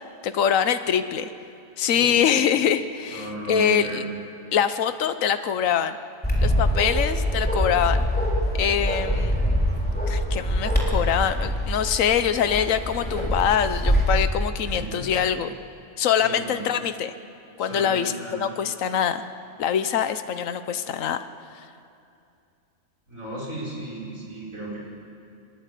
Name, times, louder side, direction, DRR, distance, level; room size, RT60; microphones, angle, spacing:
voice 1, 0.2-1.3 1.8-4.0 4.5-6.0 6.4-8.0 8.5-9.4 10.1-15.5 16.0-17.1 17.6-19.2 19.6-21.2 21.5-21.7, left 8 dB, 70° left, 11 dB, 1.3 m, -24 dB
voice 2, 1.9-2.5 3.1-4.0 14.7-15.1 16.2-16.6 17.6-18.5 23.1-24.8, right 2 dB, 70° right, -5 dB, 6.1 m, -35 dB
Bark, 6.2-14.2, equal, 5° left, 3.4 m, -24 dB
25.0 x 21.5 x 8.4 m, 2.5 s
omnidirectional pair, 1.4 m